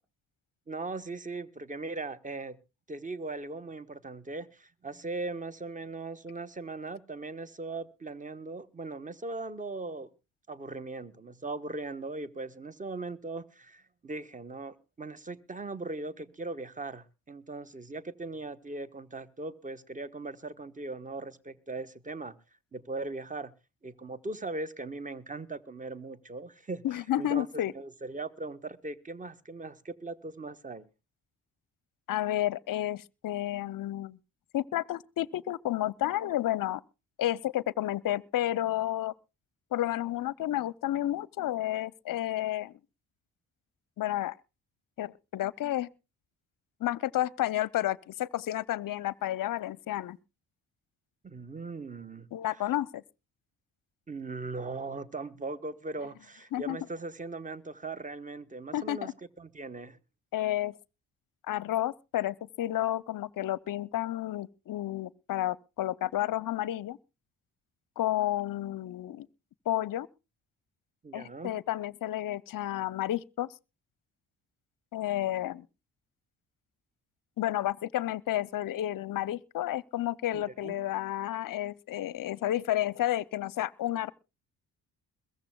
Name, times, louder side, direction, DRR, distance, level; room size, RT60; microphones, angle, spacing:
voice 1, 0.7-2.6 2.9-10.1 10.5-22.4 22.7-23.5 23.8-26.8 27.2-30.9 51.2-52.3 54.1-60.0 71.0-71.5 80.3-80.8, right 3 dB, 15° right, 1.0 m, -39 dB
voice 2, 26.8-27.7 32.1-34.2 34.5-36.8 37.2-39.1 39.7-42.7 44.0-44.4 45.0-45.9 46.8-50.2 52.3-53.0 56.5-56.8 58.7-59.1 60.3-60.7 61.5-67.0 68.0-69.3 69.7-70.1 71.1-73.5 74.9-75.6 77.4-84.1, left 13 dB, 45° left, 0.6 m, -31 dB
22.0 x 15.0 x 2.2 m
hypercardioid pair, 40°, 45 cm